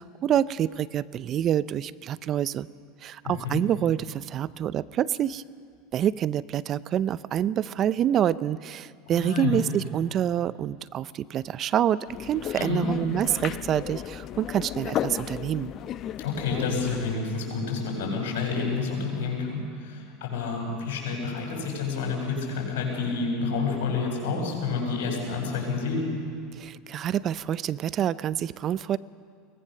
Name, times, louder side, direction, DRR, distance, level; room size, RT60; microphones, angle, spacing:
voice 1, 0.0-2.7 3.0-5.4 5.9-15.7 26.6-29.0, right 10 dB, 40° right, 18 dB, 0.6 m, -27 dB
voice 2, 3.2-3.6 9.1-9.6 12.6-12.9 16.2-26.0, left 4 dB, 75° left, 0 dB, 7.5 m, -29 dB
sound 1, 12.1-17.2, left 11 dB, 45° left, 0.8 m, -35 dB
22.5 x 19.5 x 6.7 m, 2.2 s
hypercardioid pair, 95°, 0 cm